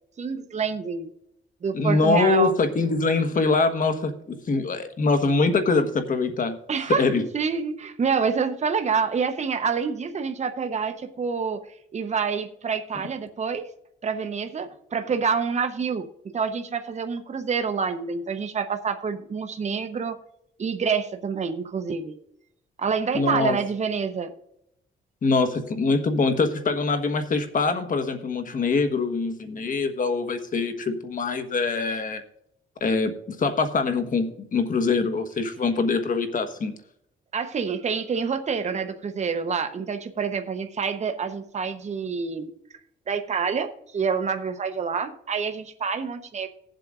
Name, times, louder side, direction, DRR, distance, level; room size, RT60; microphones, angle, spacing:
voice 1, 0.2-1.1 1.6-2.5 6.7-7.0 7.3-11.6 11.9-13.7 14.0-20.2 20.6-22.1 22.8-24.3 37.3-42.5 43.1-46.5, right 5 dB, 35° right, 7 dB, 0.9 m, -27 dB
voice 2, 1.7-6.5 6.9-7.2 23.1-23.6 25.2-32.2 32.8-36.7, left 4 dB, 45° left, 8 dB, 1.3 m, -24 dB
18.0 x 7.7 x 2.5 m, 0.77 s
cardioid pair, 90°, 20 cm